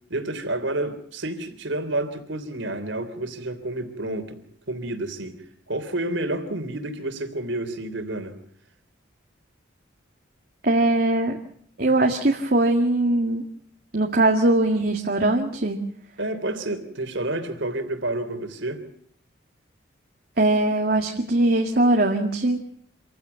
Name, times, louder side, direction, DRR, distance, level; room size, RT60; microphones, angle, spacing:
voice 1, 0.1-4.4 4.7-5.4 5.7-8.4 16.2-18.8, right 1 dB, 70° right, 8 dB, 3.4 m, -29 dB
voice 2, 10.6-11.4 11.8-13.4 13.9-15.8 20.4-22.6, right 2 dB, 50° right, 2 dB, 1.9 m, -21 dB
27.0 x 15.5 x 7.0 m, 0.65 s
head